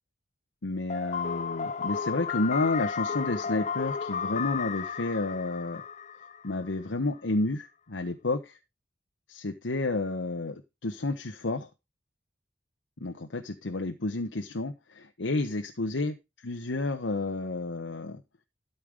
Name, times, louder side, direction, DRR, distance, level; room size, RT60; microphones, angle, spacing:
voice 1, 0.6-5.8 6.4-8.6 9.3-11.7 13.0-16.1 16.4-18.2, left 2 dB, 80° left, 7 dB, 1.0 m, -31 dB
sound 1, 0.9-6.7, left 6 dB, 40° left, 0.6 m, -33 dB
12.5 x 5.5 x 4.9 m, 0.25 s
head